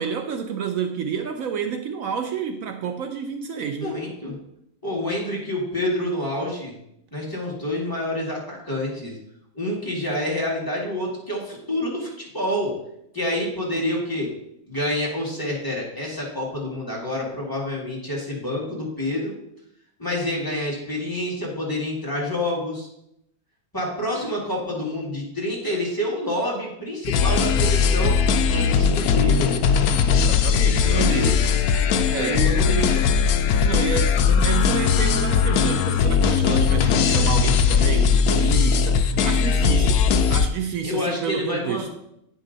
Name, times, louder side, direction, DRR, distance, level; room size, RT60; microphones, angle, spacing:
voice 1, 0.0-4.0 30.1-31.4 32.0-32.6 33.6-41.9, right 7 dB, 70° right, 6 dB, 1.0 m, -29 dB
voice 2, 3.8-4.3 4.8-6.7 7.1-9.2 9.5-12.7 13.1-14.3 14.7-19.3 20.0-22.9 23.7-28.2 28.5-29.6 30.9-31.4 32.1-33.0 40.8-41.9, left 1 dB, 15° left, -4 dB, 2.0 m, -28 dB
sound 1, 27.0-40.5, left 6 dB, 80° left, 1.0 m, -19 dB
8.9 x 5.4 x 3.9 m, 0.78 s
omnidirectional pair, 1.6 m